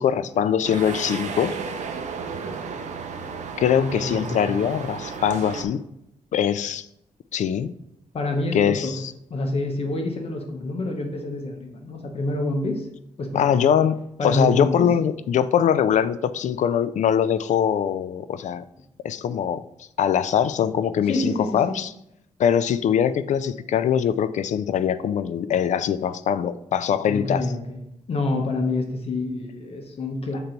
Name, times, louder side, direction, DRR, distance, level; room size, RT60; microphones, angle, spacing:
voice 1, 0.0-1.6 3.6-5.8 6.3-6.9 7.3-7.7 8.5-9.1 13.3-18.6 19.0-19.7 20.0-21.9 22.4-27.5, left 8 dB, 75° left, 14 dB, 0.4 m, -22 dB
sound 1, 0.6-5.6, right 5 dB, 70° right, 0.7 m, -33 dB
voice 2, 3.8-4.6 8.1-8.9 9.3-12.9 13.2-13.6 14.2-14.9 21.0-21.7 27.1-27.8 28.1-30.4, left 2 dB, 50° left, 2 dB, 1.0 m, -27 dB
6.8 x 3.9 x 4.4 m, 0.79 s
wide cardioid pair, 135°, 13 cm